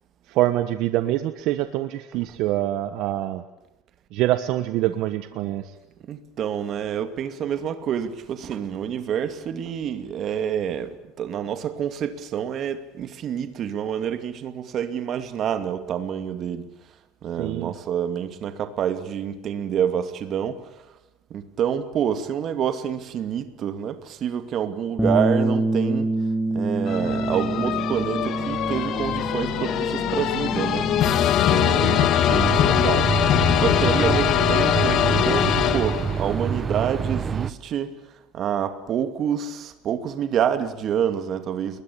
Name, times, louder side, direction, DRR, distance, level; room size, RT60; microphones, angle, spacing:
voice 1, 0.3-3.4 4.1-5.7 17.4-17.7 31.8-32.0, right 14 dB, 55° right, 1.3 m, -25 dB
voice 2, 6.1-16.7 17.2-20.7 21.3-26.1 26.5-30.9 31.4-37.9 38.3-41.8, right 9 dB, 40° right, 2.5 m, -28 dB
Bass guitar, 25.0-31.2, right 2 dB, ahead, 2.4 m, -26 dB
sound 1, 26.9-36.4, left 11 dB, 45° left, 1.8 m, -22 dB
sound 2, 32.3-37.5, right 7 dB, 20° right, 1.0 m, -26 dB
30.0 x 21.5 x 8.7 m
cardioid pair, 155°, 0 cm